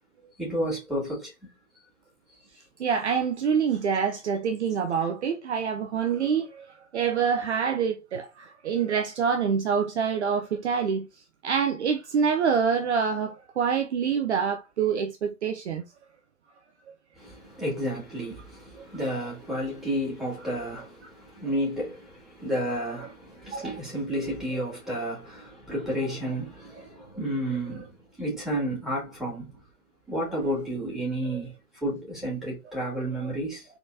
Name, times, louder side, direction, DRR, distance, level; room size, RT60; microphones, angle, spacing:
voice 1, 0.4-1.3 17.2-29.6 30.1-31.5 31.8-33.7, right 1 dB, ahead, 2.7 m, -31 dB
voice 2, 2.8-11.1 11.4-15.8 23.5-23.7, right 6 dB, 45° right, 0.7 m, -26 dB
4.5 x 4.1 x 2.7 m
figure-of-eight pair, 130°, 46 cm